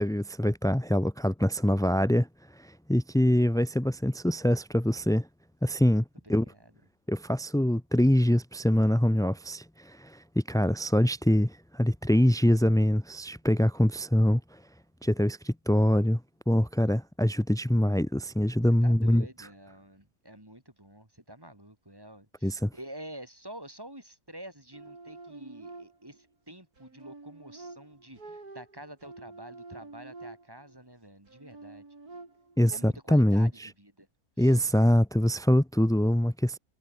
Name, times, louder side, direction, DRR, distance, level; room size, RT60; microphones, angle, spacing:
voice 1, 0.0-2.3 2.5-5.3 5.6-6.4 7.1-14.6 15.0-16.2 16.5-19.5 22.4-22.7 32.6-33.7 34.4-36.6, equal, 5° left, 0.3 m, -24 dB
voice 2, 18.8-31.8 32.7-34.1 34.4-34.6, right 1 dB, 15° right, 5.0 m, -48 dB
sound 1, 24.7-26.2 26.8-30.8 31.3-32.8, right 3 dB, 75° right, 4.9 m, -48 dB
omnidirectional pair, 1.6 m